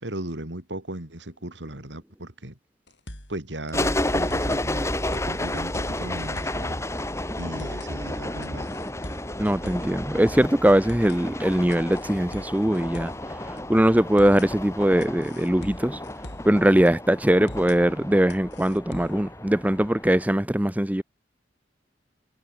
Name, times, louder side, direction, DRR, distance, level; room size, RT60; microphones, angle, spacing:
voice 1, 0.0-2.6 3.3-6.8 7.4-8.7, right 1 dB, 85° right, 3.7 m, -37 dB
sound 1, 2.9-3.4 3.7-3.8 4.1-4.6 5.1-6.7 7.0-7.1 7.4-7.9 8.4-10.0 10.3-10.4 10.7-11.2 11.7-13.3 13.6-13.7 14.0-14.5 15.0-16.6 16.9-17.0 17.3-17.8 18.3-19.3, left 1 dB, 80° left, 7.0 m, -42 dB
sound 2, 3.7-20.2, left 1 dB, 15° left, 5.6 m, -32 dB
voice 2, 9.4-13.1 13.5-16.0 16.4-21.0, right 1 dB, 10° right, 0.7 m, -21 dB
head